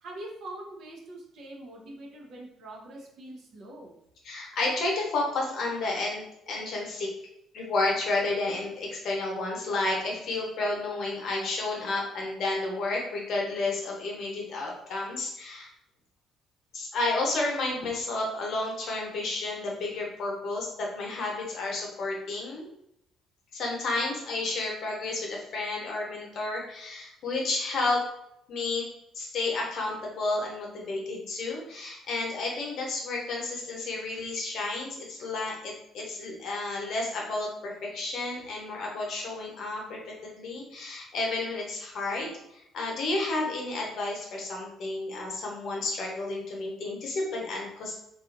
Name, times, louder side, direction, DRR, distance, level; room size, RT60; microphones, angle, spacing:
voice 1, 0.0-3.9, right 1 dB, 65° right, -2 dB, 0.7 m, -43 dB
voice 2, 4.2-7.1 7.5-15.7 16.7-22.7 23.5-28.0 28.5-28.8 29.1-47.9, left 2 dB, 65° left, -1 dB, 0.8 m, -31 dB
2.6 x 2.4 x 2.5 m, 0.78 s
hypercardioid pair, 55°, 0 cm